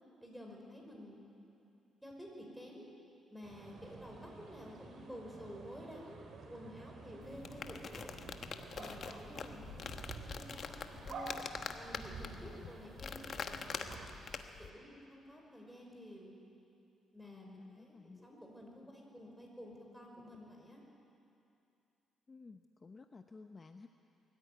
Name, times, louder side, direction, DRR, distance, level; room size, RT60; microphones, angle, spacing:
voice 1, 0.2-1.2 2.0-2.9 3.3-8.2 8.7-11.4 11.7-14.1 14.6-16.3 17.1-18.0 18.2-20.8, equal, 5° right, 0 dB, 5.3 m, -51 dB
sound 1, 3.4-14.2, right 4 dB, 60° right, 2.8 m, -51 dB
sound 2, 7.2-14.7, left 6 dB, 55° left, 1.1 m, -45 dB
voice 2, 17.2-18.4 18.8-18.9 22.3-23.9, left 4 dB, 30° left, 6 dB, 0.8 m, -55 dB
22.0 x 14.0 x 9.5 m, 2.7 s
cardioid pair, 90°, 0 cm